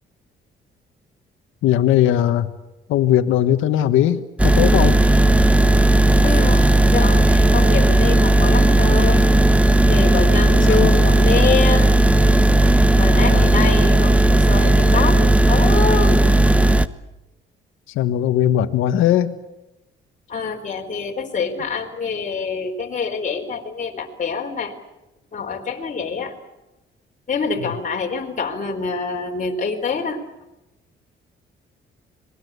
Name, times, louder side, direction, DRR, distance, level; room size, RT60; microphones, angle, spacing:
voice 1, 1.6-2.5 2.9-5.0 10.6-10.9 13.3-13.6 17.9-19.4 27.6-27.8, left 11 dB, 90° left, 9 dB, 1.5 m, -19 dB
sound 1, 4.4-16.9, right 1 dB, 5° right, 1.0 m, -15 dB
voice 2, 6.2-9.3 9.9-11.9 13.0-16.2 20.3-24.7 25.3-26.3 27.3-30.2, left 5 dB, 40° left, 1 dB, 3.9 m, -25 dB
26.0 x 20.5 x 8.2 m, 0.93 s
cardioid pair, 90°, 20 cm